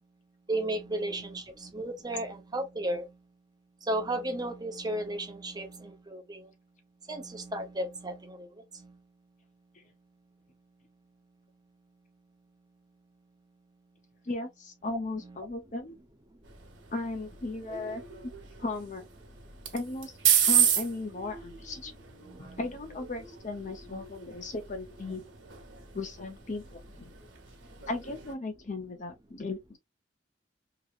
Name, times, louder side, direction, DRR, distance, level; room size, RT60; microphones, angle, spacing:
voice 1, 0.5-3.1 3.8-6.5 7.1-8.9 22.2-22.6, right 1 dB, 20° right, 0.7 m, -34 dB
voice 2, 14.3-16.0 16.9-18.0 18.6-19.1 19.7-20.1 20.5-21.9 22.4-25.2 25.9-27.1 27.9-29.8, left 2 dB, 40° left, 0.7 m, -36 dB
sound 1, 16.4-28.3, right 8 dB, 85° right, 1.1 m, -33 dB
3.0 x 3.0 x 2.5 m
head